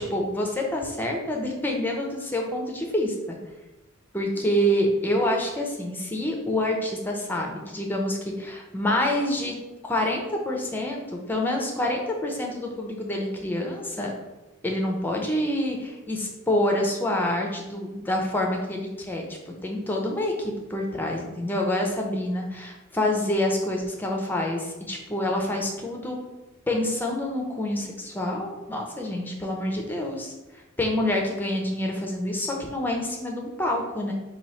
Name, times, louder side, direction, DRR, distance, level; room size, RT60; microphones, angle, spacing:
voice 1, 0.0-3.4 4.1-9.5 9.8-14.1 14.6-19.3 19.6-26.2 26.7-30.3 30.8-34.1, left 1 dB, 10° left, 0 dB, 0.5 m, -27 dB
3.0 x 2.7 x 4.3 m, 1.1 s
head